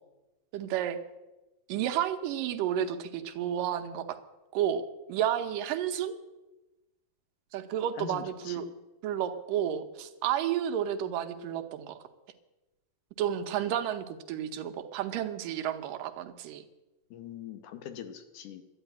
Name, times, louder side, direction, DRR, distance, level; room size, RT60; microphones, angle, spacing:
voice 1, 0.5-1.0 1.7-4.2 4.5-4.8 5.1-6.2 7.5-8.7 9.0-12.0 13.2-16.6, right 10 dB, 80° right, 7 dB, 2.6 m, -31 dB
voice 2, 8.0-8.7 17.1-18.6, left 10 dB, 70° left, 9 dB, 2.4 m, -42 dB
12.0 x 10.0 x 9.3 m, 1.0 s
omnidirectional pair, 3.9 m